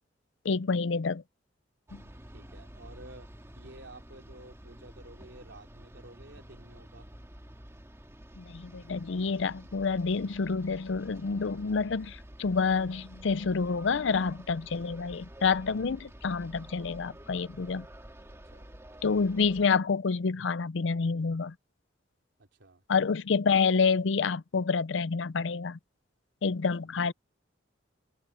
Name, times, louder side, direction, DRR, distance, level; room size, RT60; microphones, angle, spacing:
voice 1, 0.4-1.2 1.9-2.0 8.4-17.8 19.0-21.5 22.9-25.8 26.4-27.1, left 5 dB, 70° left, 0.5 m, -28 dB
sound 1, 1.9-19.7, equal, 15° right, 1.9 m, -50 dB
voice 2, 2.3-3.3 3.6-7.1 18.5-18.7 22.4-22.8 26.8-26.9, right 2 dB, 70° right, 3.7 m, -51 dB
head